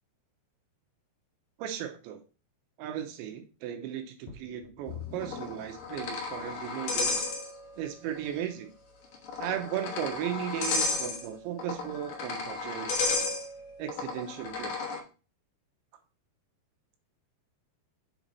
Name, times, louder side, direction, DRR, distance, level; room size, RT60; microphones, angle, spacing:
voice 1, 1.6-2.2 2.8-7.2 7.8-8.7 9.4-13.1 13.8-14.8, right 10 dB, 85° right, 6 dB, 3.2 m, -36 dB
sound 1, 4.3-6.7 7.4-7.5 8.1-8.2, left 8 dB, 90° left, 1.8 m, -45 dB
sound 2, 5.2-7.9 8.2-8.3 9.1-15.0, left 4 dB, 70° left, 1.8 m, -33 dB
7.1 x 4.4 x 4.1 m, 0.34 s
omnidirectional pair, 5.2 m